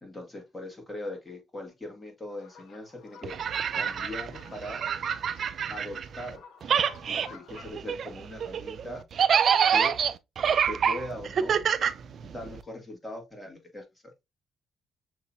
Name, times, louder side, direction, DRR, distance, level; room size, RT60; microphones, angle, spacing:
voice 1, 0.0-3.4 3.7-4.8 5.7-6.4 7.1-9.1 9.7-10.0 10.7-11.6 12.2-13.8, left 1 dB, 15° left, 2.0 m, -40 dB
sound 1, 2.3-7.7, left 5 dB, 90° left, 0.8 m, -51 dB
sound 2, 3.2-6.3 6.6-12.6, right 7 dB, 55° right, 0.4 m, -27 dB
6.5 x 2.9 x 2.6 m
cardioid pair, 90°, 0 cm